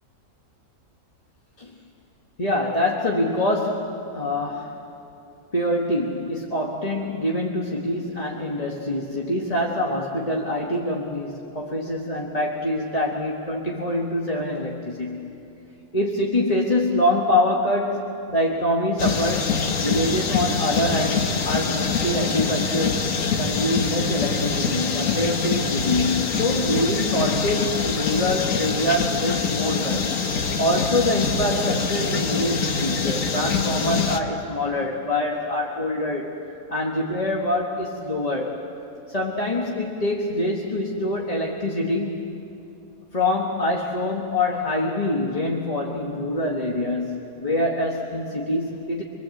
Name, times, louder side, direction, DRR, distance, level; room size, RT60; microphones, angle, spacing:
voice 1, 2.4-4.8 5.5-15.3 15.9-23.0 23.4-30.2 30.6-36.3 36.7-38.6 39.1-42.2 43.1-49.0, left 1 dB, 25° left, -1 dB, 1.4 m, -25 dB
sound 1, 19.0-34.2, left 5 dB, 60° left, 1.6 m, -24 dB
26.0 x 22.5 x 7.8 m, 2.8 s
omnidirectional pair, 1.6 m